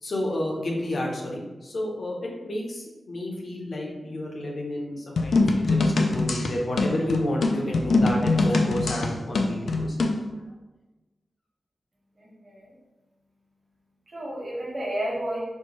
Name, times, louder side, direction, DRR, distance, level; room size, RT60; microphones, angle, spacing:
voice 1, 0.0-10.0, left 1 dB, 60° left, -1 dB, 0.7 m, -30 dB
sound 1, 5.2-10.2, left 3 dB, 85° left, 0.3 m, -23 dB
voice 2, 12.2-12.6 14.1-15.4, right 1 dB, 40° right, -5 dB, 1.1 m, -31 dB
4.3 x 2.2 x 2.9 m, 1.1 s
wide cardioid pair, 135°, 0 cm